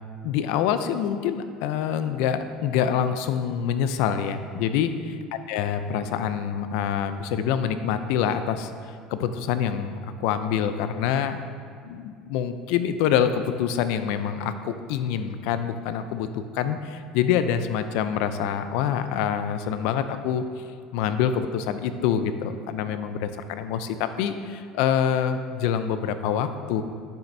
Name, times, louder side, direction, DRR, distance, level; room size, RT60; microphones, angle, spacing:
voice 1, 0.2-4.9 5.5-11.4 11.8-20.6 20.9-26.8, left 8 dB, 75° left, 10 dB, 0.5 m, -26 dB
9.3 x 7.2 x 2.7 m, 2.2 s
cardioid pair, 150°, 0 cm